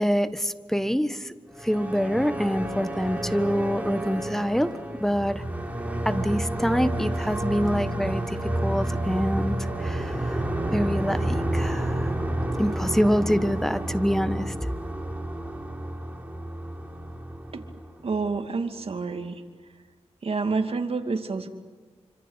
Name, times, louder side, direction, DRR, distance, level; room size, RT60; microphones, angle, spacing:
voice 1, 0.0-1.3 1.6-5.4 6.0-10.4 10.7-12.1 12.6-14.5, equal, 5° left, 12 dB, 1.3 m, -26 dB
sound 1, 1.5-18.4, right 1 dB, 15° right, 4.5 m, -30 dB
voice 2, 18.0-19.4 20.2-21.5, right 4 dB, 60° right, 5 dB, 2.5 m, -28 dB
26.5 x 25.5 x 8.2 m, 1.4 s
cardioid pair, 60°, 11 cm